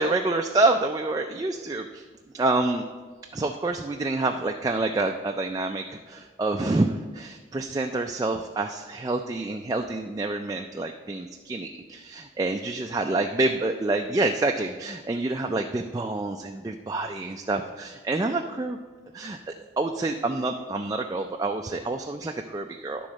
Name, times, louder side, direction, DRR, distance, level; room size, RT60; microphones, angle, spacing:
voice 1, 0.0-2.0 2.3-2.8 3.3-18.8 19.1-19.4 19.8-23.1, right 2 dB, 20° right, 4 dB, 0.3 m, -27 dB
11.5 x 3.8 x 6.2 m, 1.4 s
head